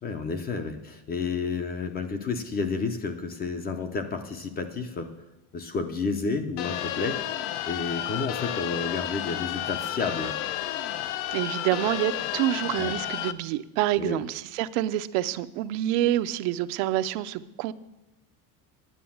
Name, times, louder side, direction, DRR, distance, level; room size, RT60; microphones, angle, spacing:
voice 1, 0.0-5.1 5.5-7.2 7.7-10.3 12.8-13.0 14.0-14.2, left 4 dB, 20° left, 8 dB, 0.4 m, -31 dB
sound 1, 6.6-13.3, left 12 dB, 85° left, 0.8 m, -32 dB
voice 2, 11.3-17.7, right 13 dB, 80° right, 12 dB, 0.7 m, -27 dB
9.7 x 9.3 x 7.1 m, 0.94 s
cardioid pair, 175°, 47 cm